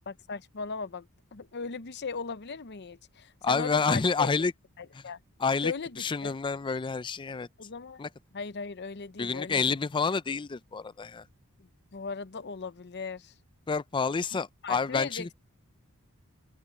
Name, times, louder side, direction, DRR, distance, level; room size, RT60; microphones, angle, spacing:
voice 1, 0.1-4.3 4.8-5.2 5.6-6.3 7.6-8.1 8.3-9.8 11.6-13.3 14.6-15.3, left 4 dB, 50° left, 0.7 m, -38 dB
voice 2, 3.4-4.5 4.9-5.0 5.4-7.5 8.0-8.1 9.2-11.3 13.7-15.3, left 4 dB, 20° left, 0.4 m, -29 dB
open air
head